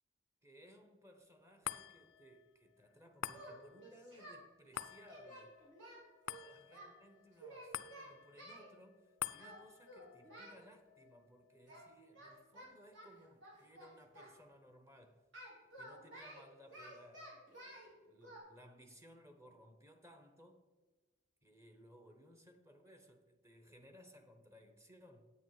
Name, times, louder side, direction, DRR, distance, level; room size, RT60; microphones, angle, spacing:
voice 1, 0.4-5.6 6.4-15.2 15.7-20.6 21.4-25.3, equal, 15° right, 0.8 m, -61 dB
sound 1, 1.6-14.2 14.7-14.8, left 11 dB, 75° left, 0.4 m, -50 dB
Singing, 3.3-4.4 4.7-6.9 7.4-8.7 9.4-9.6 9.9-10.6 11.7-11.9 12.1-14.3 15.3-17.9 18.2-18.4, right 1 dB, 70° right, 3.3 m, -53 dB
8.6 x 8.3 x 4.7 m
head